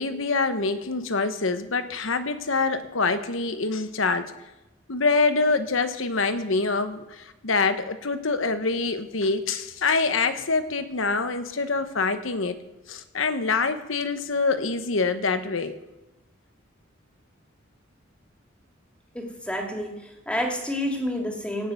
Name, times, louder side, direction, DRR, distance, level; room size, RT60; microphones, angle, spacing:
voice 1, 0.0-4.3 4.9-12.6 12.9-15.8, left 4 dB, 75° left, 10 dB, 1.2 m, -25 dB
voice 2, 19.1-20.0 20.3-21.7, equal, 5° left, 2 dB, 2.3 m, -29 dB
17.5 x 6.7 x 8.3 m, 1.0 s
head